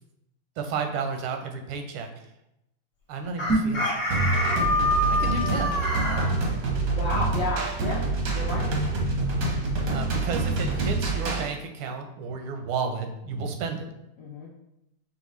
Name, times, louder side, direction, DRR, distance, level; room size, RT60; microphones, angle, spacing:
voice 1, 0.6-2.3 3.1-4.0 5.1-5.8 9.5-13.9, right 5 dB, 90° right, 4 dB, 1.5 m, -32 dB
Chicken rooster, 3.4-6.3, left 1 dB, 45° left, 1.2 m, -26 dB
sound 1, 3.4-3.9, right 2 dB, 10° left, 0.5 m, -25 dB
sound 2, 4.1-11.5, right 3 dB, 65° right, 0.9 m, -26 dB
voice 2, 4.6-4.9 7.0-8.0 8.3-8.7 14.2-14.5, left 2 dB, 70° left, -6 dB, 0.7 m, -32 dB
5.3 x 2.4 x 3.1 m, 0.84 s
omnidirectional pair, 2.3 m